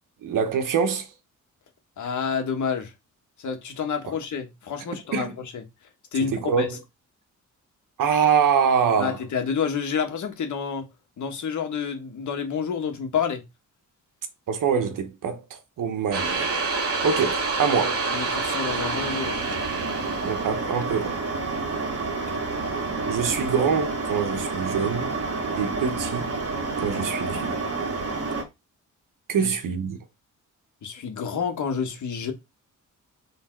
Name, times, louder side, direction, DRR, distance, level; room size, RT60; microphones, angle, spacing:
voice 1, 0.2-1.1 5.1-5.3 6.3-6.8 8.0-9.2 14.5-16.5 17.0-18.0 20.2-21.2 23.1-25.1 25.6-26.3 26.8-27.6 29.3-30.0, right 6 dB, 85° right, 1.4 m, -24 dB
voice 2, 2.0-2.9 3.4-5.6 6.1-6.7 9.0-10.9 11.2-13.4 18.1-19.6 22.3-22.4 29.4-29.5 30.8-32.3, left 6 dB, 65° left, 1.6 m, -29 dB
sound 1, 16.1-28.4, right 3 dB, 50° right, 2.0 m, -28 dB
6.2 x 3.8 x 4.6 m
wide cardioid pair, 160°, 31 cm